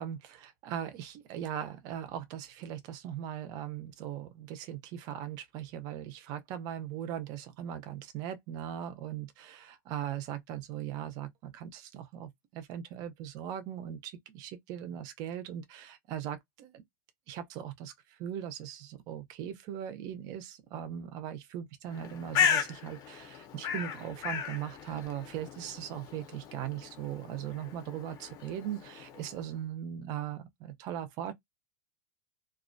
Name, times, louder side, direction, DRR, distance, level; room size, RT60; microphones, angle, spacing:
voice 1, 0.0-16.8 17.3-31.3, right 10 dB, 35° right, 0.5 m, -39 dB
Bird, 21.9-29.5, left 7 dB, 30° left, 0.6 m, -35 dB
2.3 x 2.1 x 2.5 m
supercardioid pair, 165°, 12 cm